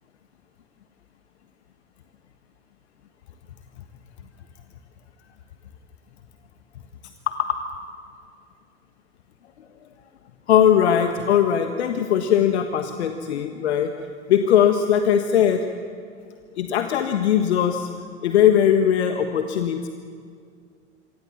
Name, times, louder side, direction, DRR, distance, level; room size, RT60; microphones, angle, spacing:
voice 1, 10.5-13.9 14.3-15.6 16.5-17.9 18.2-19.9, left 9 dB, 65° left, 7 dB, 1.4 m, -20 dB
26.5 x 24.5 x 7.3 m, 2.2 s
figure-of-eight pair, 75°, 35 cm